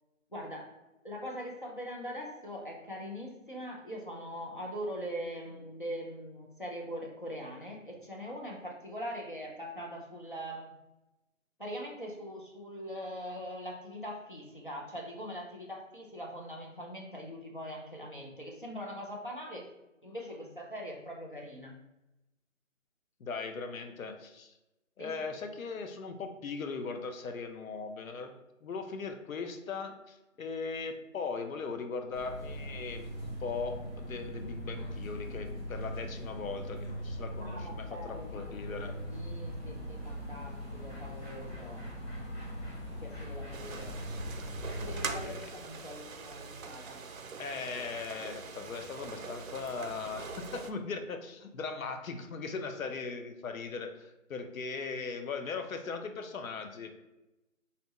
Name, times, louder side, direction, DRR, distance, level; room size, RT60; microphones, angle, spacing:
voice 1, 0.3-0.7 1.0-10.8 11.6-19.7 20.0-21.8 25.0-25.2 37.4-41.9 42.8-43.9 44.8-47.0, equal, 40° left, -2 dB, 0.5 m, -42 dB
voice 2, 23.2-24.5 25.0-28.4 28.6-38.9 45.2-45.5 47.4-57.0, left 4 dB, 85° left, 6 dB, 0.6 m, -39 dB
sound 1, 32.1-45.2, equal, 20° left, 1.1 m, -40 dB
sound 2, 43.5-50.7, right 5 dB, 85° right, 0.6 m, -43 dB
2.7 x 2.2 x 3.9 m, 0.98 s
hypercardioid pair, 180°, 40 cm